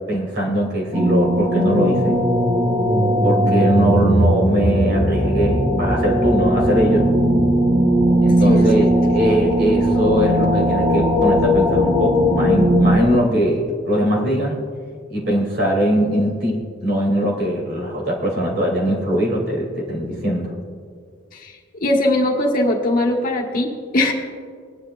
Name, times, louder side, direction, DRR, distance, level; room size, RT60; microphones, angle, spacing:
voice 1, 0.0-2.2 3.2-7.1 8.2-14.6 15.1-20.5, equal, 60° right, -2 dB, 2.9 m, -21 dB
sound 1, 0.9-13.0, equal, 20° right, 1.1 m, -18 dB
voice 2, 8.4-8.8 21.4-21.5 21.8-24.1, left 1 dB, 45° left, -1 dB, 1.5 m, -20 dB
20.5 x 10.5 x 2.5 m, 2.1 s
head